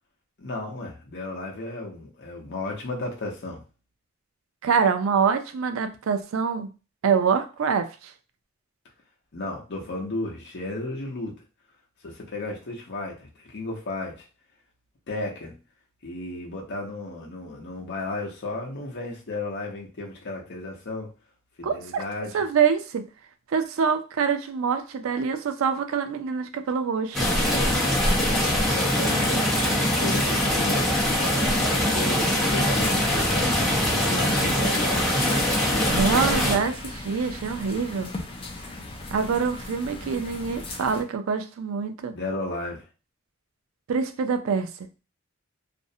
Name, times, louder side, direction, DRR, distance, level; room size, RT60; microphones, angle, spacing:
voice 1, 0.4-3.6 9.3-11.4 12.0-14.3 15.1-15.5 16.0-21.1 21.6-22.5 28.7-31.0 31.6-33.7 34.0-35.3 42.1-42.8, left 2 dB, 55° left, 0.7 m, -34 dB
voice 2, 4.6-6.7 7.0-7.9 21.6-22.0 22.3-23.0 23.5-27.3 34.4-34.8 35.9-38.1 39.1-42.1 43.9-44.7, right 6 dB, 80° right, 0.4 m, -25 dB
sound 1, 27.1-36.6, left 1 dB, ahead, 0.9 m, -23 dB
sound 2, 32.7-41.0, left 2 dB, 25° left, 0.5 m, -36 dB
2.5 x 2.0 x 2.6 m
head